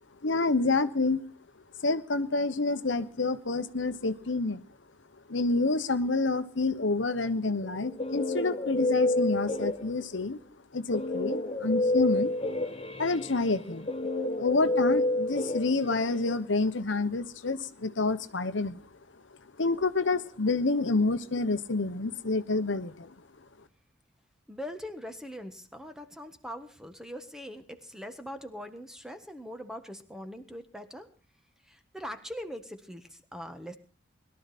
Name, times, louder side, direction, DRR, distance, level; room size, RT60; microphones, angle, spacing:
voice 1, 0.2-1.2 1.8-4.6 5.3-10.4 10.7-12.3 13.0-13.9 14.4-18.8 19.6-23.1, left 3 dB, 70° left, 11 dB, 1.1 m, -28 dB
Guitar, 7.6-10.2 10.9-16.3, left 1 dB, 30° left, 1.0 m, -29 dB
voice 2, 24.5-31.1 31.6-33.8, equal, 5° right, 8 dB, 1.4 m, -42 dB
21.5 x 12.5 x 4.2 m, 0.40 s
head